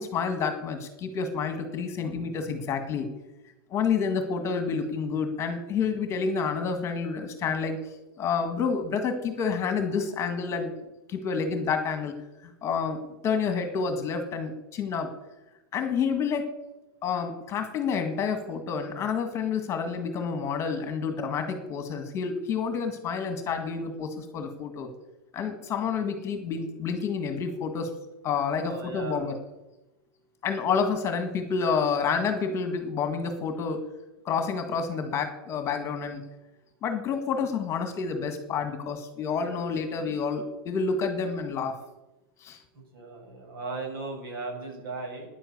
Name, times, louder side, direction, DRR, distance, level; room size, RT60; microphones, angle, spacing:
voice 1, 0.0-3.1 3.7-7.8 8.2-10.7 11.1-12.1 12.6-13.0 13.2-15.1 15.7-16.5 17.0-24.9 25.3-27.9 28.2-29.4 30.4-33.8 34.3-36.2 36.8-41.7 42.4-42.6, left 5 dB, 20° left, 7 dB, 1.8 m, -29 dB
voice 2, 28.6-29.4 42.7-45.3, right 3 dB, 70° right, 2 dB, 7.3 m, -37 dB
15.0 x 10.5 x 8.2 m, 1.0 s
supercardioid pair, 155°, 13 cm